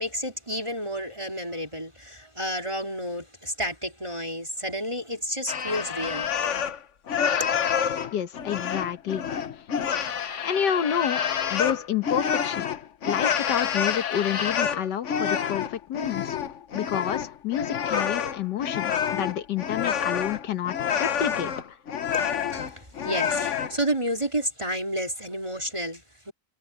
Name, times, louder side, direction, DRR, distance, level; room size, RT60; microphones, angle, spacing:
voice 1, 0.0-6.3 22.5-26.3, equal, 15° right, 3.8 m, -31 dB
sound 1, 5.5-6.8 7.1-23.8, left 8 dB, 50° left, 1.1 m, -28 dB
voice 2, 8.1-9.2 10.4-11.2 11.5-12.7 13.0-16.4 16.7-21.5, left 9 dB, 75° left, 1.7 m, -29 dB
omnidirectional pair, 1.9 m